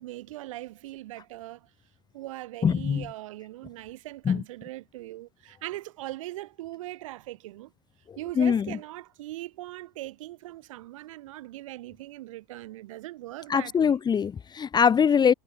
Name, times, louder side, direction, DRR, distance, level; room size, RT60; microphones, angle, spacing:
voice 1, 0.0-1.7 2.1-7.7 8.2-14.0, right 16 dB, 85° right, 3.0 m, -40 dB
voice 2, 2.6-3.0 4.3-4.4 8.4-8.7 13.5-15.3, left 7 dB, 25° left, 0.9 m, -22 dB
supercardioid pair, 105°, 16 cm